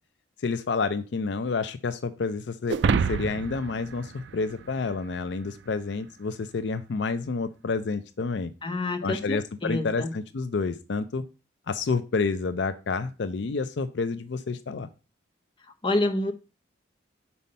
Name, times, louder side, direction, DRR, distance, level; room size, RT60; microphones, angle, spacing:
voice 1, 0.4-2.8 3.1-8.5 9.0-11.2 11.7-14.9, left 4 dB, 65° left, 12 dB, 0.5 m, -29 dB
sound 1, 2.7-5.2, right 5 dB, 70° right, 0.4 m, -28 dB
voice 2, 8.6-10.1 15.8-16.3, left 2 dB, 25° left, 6 dB, 0.7 m, -27 dB
5.5 x 4.1 x 5.4 m, 0.32 s
head